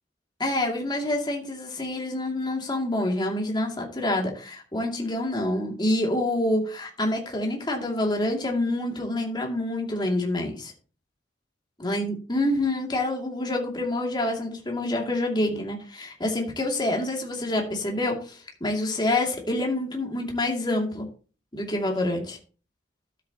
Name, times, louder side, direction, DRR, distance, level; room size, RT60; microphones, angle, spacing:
voice 1, 0.4-10.7 11.8-21.1 21.5-22.4, left 1 dB, 25° left, 1 dB, 2.5 m, -27 dB
12.5 x 8.3 x 2.9 m, 0.36 s
head